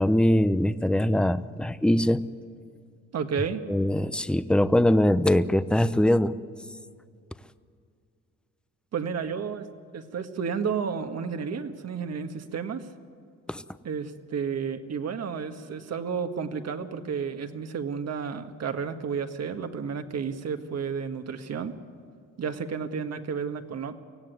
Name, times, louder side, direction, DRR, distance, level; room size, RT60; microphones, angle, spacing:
voice 1, 0.0-2.2 3.7-6.3 13.5-13.6, left 1 dB, 5° left, 13 dB, 0.8 m, -22 dB
voice 2, 3.1-3.6 8.9-12.9 13.8-21.8 22.4-23.9, right 6 dB, 55° right, 7 dB, 1.8 m, -32 dB
24.5 x 16.5 x 9.3 m, 2.3 s
supercardioid pair, 75°, 30 cm